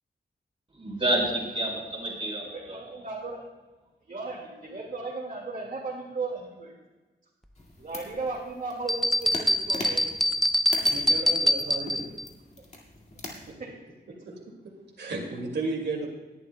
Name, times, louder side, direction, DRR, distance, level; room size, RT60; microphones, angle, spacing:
voice 1, 0.8-2.9, right 1 dB, 30° right, -4 dB, 3.7 m, -29 dB
voice 2, 2.5-3.4 4.1-6.7 7.8-10.1 13.6-13.7, right 3 dB, 50° right, -4 dB, 2.0 m, -36 dB
sound 1, 7.6-13.5, left 2 dB, 40° left, 2.1 m, -42 dB
sound 2, 8.9-12.2, equal, ahead, 0.4 m, -24 dB
voice 3, 10.7-12.2 15.0-16.1, right 3 dB, 90° right, -2 dB, 2.2 m, -33 dB
19.5 x 11.0 x 2.2 m, 1.2 s
wide cardioid pair, 170°, 18 cm